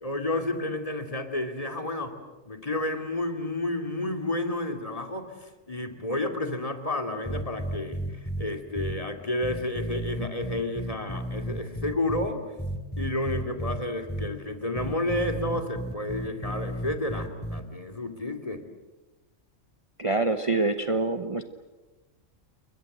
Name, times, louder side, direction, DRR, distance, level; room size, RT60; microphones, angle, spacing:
voice 1, 0.0-2.1 2.5-12.5 13.0-18.6, left 1 dB, 25° left, 5 dB, 2.6 m, -31 dB
sound 1, 7.2-8.4 8.7-8.9 9.4-12.3 12.6-13.8 14.1-14.3 14.7-17.6, right 1 dB, 10° left, 2.5 m, -33 dB
voice 2, 20.0-21.4, right 3 dB, 25° right, 8 dB, 1.0 m, -25 dB
29.0 x 22.5 x 7.9 m, 1.2 s
omnidirectional pair, 1.3 m